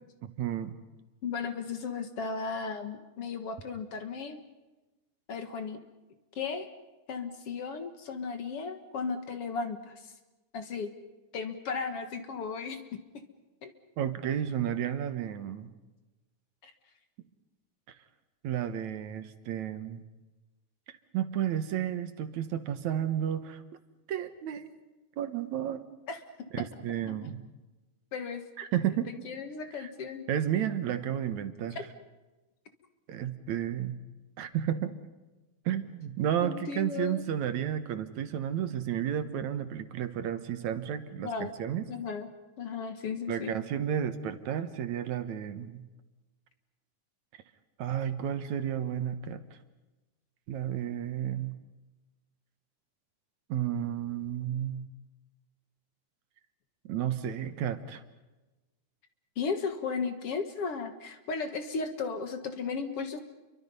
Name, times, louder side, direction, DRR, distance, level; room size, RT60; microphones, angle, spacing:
voice 1, 0.2-0.8 14.0-15.7 18.4-20.0 20.9-23.6 24.1-24.7 25.2-25.9 26.5-27.4 28.6-29.1 29.8-29.9 30.3-31.8 33.1-34.0 34.4-34.9 35.7-41.8 43.3-45.8 47.8-49.4 50.5-51.6 53.5-54.9 56.9-58.0, right 10 dB, 75° right, 9 dB, 2.5 m, -32 dB
voice 2, 1.2-4.4 5.3-5.8 6.4-6.7 7.1-10.1 10.5-10.9 11.3-12.8 13.6-13.7 16.6-16.7 26.1-26.2 27.1-27.2 28.1-28.4 29.0-30.3 36.4-37.2 41.2-41.5 41.9-42.3 42.6-43.6 59.4-63.2, left 5 dB, 55° left, 7 dB, 2.2 m, -35 dB
29.5 x 24.0 x 5.5 m, 1.1 s
omnidirectional pair, 3.4 m